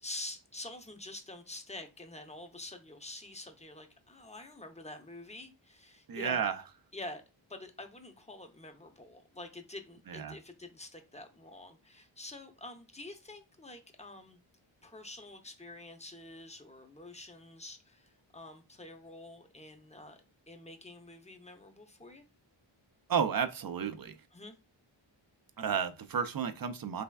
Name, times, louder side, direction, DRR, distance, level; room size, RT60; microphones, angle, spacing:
voice 1, 0.0-6.4 6.9-7.2 7.5-14.4 14.8-20.2 20.5-22.2 24.3-24.6, left 2 dB, 15° left, 0.6 m, -47 dB
voice 2, 6.1-6.6 10.1-10.4 23.1-24.2 25.6-27.0, right 7 dB, 45° right, 0.4 m, -32 dB
3.4 x 3.2 x 2.3 m
wide cardioid pair, 55°, 49 cm